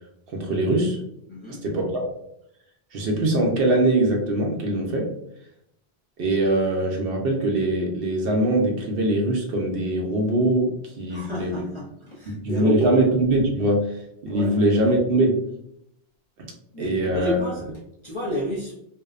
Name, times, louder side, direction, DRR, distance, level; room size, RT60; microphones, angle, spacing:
voice 1, 0.3-1.0 1.6-2.0 2.9-5.1 6.2-11.6 12.3-15.5 16.8-17.4, right 1 dB, 65° right, 1 dB, 0.8 m, -22 dB
voice 2, 1.3-1.7 11.1-13.1 14.3-14.6 16.7-17.6 18.0-18.8, left 1 dB, 40° left, -6 dB, 0.5 m, -30 dB
2.6 x 2.1 x 2.3 m, 0.75 s
omnidirectional pair, 1.1 m